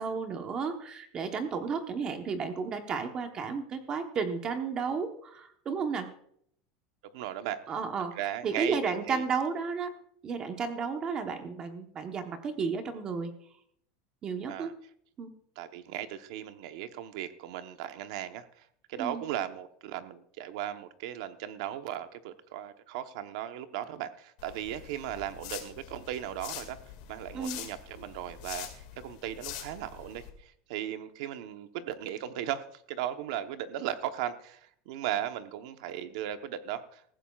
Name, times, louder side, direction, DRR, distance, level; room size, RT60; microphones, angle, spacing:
voice 1, 0.0-6.1 7.7-8.1 8.4-9.9 10.2-13.3 14.2-14.7 15.2-15.3 19.0-19.2 27.3-27.6, right 5 dB, 20° right, 6 dB, 1.0 m, -33 dB
voice 2, 7.0-7.6 8.1-8.8 9.1-9.3 14.5-14.7 15.6-26.8 27.1-37.1, right 11 dB, 60° right, 9 dB, 0.9 m, -37 dB
sound 1, 24.4-30.3, left 11 dB, 60° left, 2.1 m, -44 dB
18.5 x 15.0 x 2.4 m, 0.67 s
supercardioid pair, 180°, 4 cm